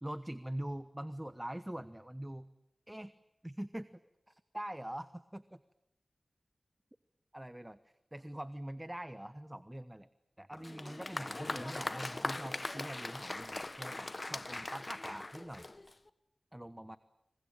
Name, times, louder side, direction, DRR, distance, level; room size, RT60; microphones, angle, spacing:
voice 1, 0.0-2.5 2.9-3.1 3.4-3.9 4.3-5.6 7.3-7.8 8.1-10.1 10.4-15.7 16.5-17.0, right 1 dB, 15° right, 14 dB, 1.1 m, -43 dB
Applause, 10.5-16.1, left 2 dB, 40° left, 1.4 m, -40 dB
27.5 x 23.0 x 8.9 m, 0.89 s
cardioid pair, 40°, 0 cm